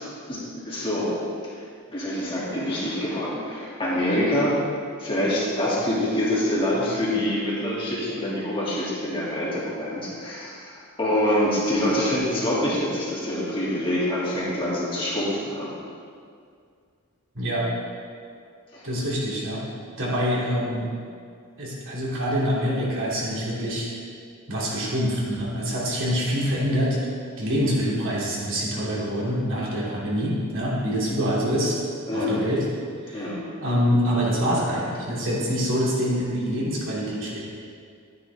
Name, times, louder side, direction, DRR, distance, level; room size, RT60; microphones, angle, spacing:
voice 1, 0.3-1.2 1.9-4.6 5.0-15.7 18.7-18.8 32.1-32.4 33.1-33.4, left 1 dB, 25° left, -7 dB, 2.5 m, -25 dB
voice 2, 17.3-17.7 18.8-19.6 20.0-20.9 21.6-23.9 24.5-27.0 27.4-31.8 32.1-32.6 33.0-37.4, equal, 60° right, -6 dB, 2.9 m, -25 dB
12.0 x 9.7 x 3.5 m, 2.2 s
head